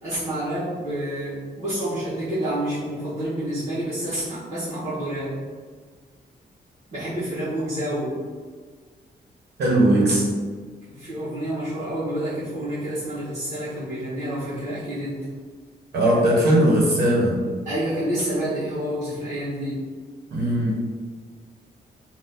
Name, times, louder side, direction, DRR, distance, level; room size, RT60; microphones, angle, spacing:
voice 1, 0.0-5.4 6.9-8.2 10.9-15.3 17.6-19.9, right 1 dB, 40° right, -13 dB, 1.1 m, -28 dB
voice 2, 9.6-10.3 15.9-17.4 20.3-20.7, right 1 dB, 70° right, -4 dB, 1.0 m, -19 dB
2.8 x 2.4 x 3.6 m, 1.5 s
wide cardioid pair, 175°, 17 cm